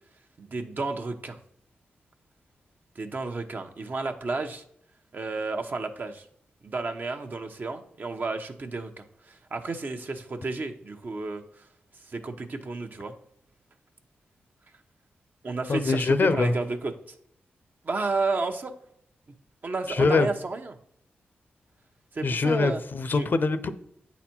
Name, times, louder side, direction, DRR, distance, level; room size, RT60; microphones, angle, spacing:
voice 1, 0.4-1.4 3.0-4.6 5.1-6.3 6.6-11.4 12.1-13.1 15.4-16.9 17.8-18.7 19.6-20.8 22.1-22.8 23.1-23.3, right 3 dB, 50° right, 0.9 m, -32 dB
voice 2, 15.7-16.5 19.9-20.3 22.2-23.7, left 4 dB, 55° left, 0.6 m, -23 dB
8.4 x 4.1 x 4.4 m
cardioid pair, 60°, 4 cm